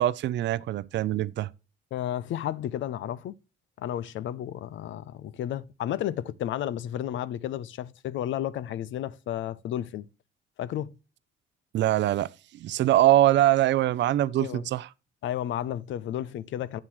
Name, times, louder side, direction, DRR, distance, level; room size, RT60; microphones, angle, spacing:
voice 1, 0.0-1.5 11.7-14.9, right 14 dB, 65° right, 0.5 m, -23 dB
voice 2, 1.9-3.3 3.8-10.1 10.6-10.9 14.4-14.7 15.2-16.8, left 11 dB, 75° left, 0.6 m, -32 dB
9.0 x 7.4 x 3.1 m
cardioid pair, 90°, 20 cm